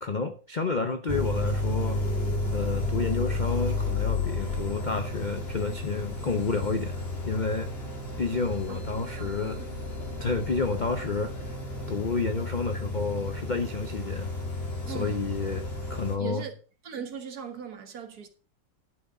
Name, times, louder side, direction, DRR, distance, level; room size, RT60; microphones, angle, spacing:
voice 1, 0.0-2.0 2.5-7.0 7.3-7.7 8.2-9.6 10.2-11.4 11.9-14.3 14.9-15.6 15.9-16.5, left 4 dB, 50° left, 0.5 m, -30 dB
sound 1, 1.1-16.2, left 2 dB, 35° left, 2.5 m, -32 dB
voice 2, 9.2-9.7 14.9-15.2 16.2-16.5 16.8-18.3, right 7 dB, 60° right, 1.8 m, -39 dB
11.0 x 6.5 x 4.8 m
omnidirectional pair, 1.9 m